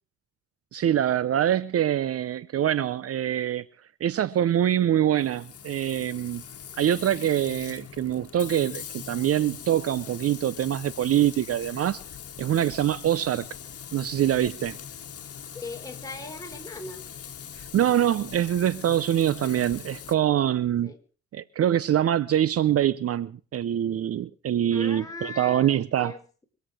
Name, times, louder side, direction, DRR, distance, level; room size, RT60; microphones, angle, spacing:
voice 1, 0.7-3.6 4.0-6.4 6.8-12.0 12.4-13.5 13.9-14.8 17.7-20.9 21.3-26.1, right 11 dB, 50° right, 0.6 m, -24 dB
Frying (food), 5.2-20.1, left 8 dB, 50° left, 1.9 m, -42 dB
voice 2, 15.5-17.0 20.8-21.0 24.7-26.4, left 3 dB, 10° left, 3.8 m, -39 dB
24.0 x 8.1 x 6.3 m
cardioid pair, 90°, 30 cm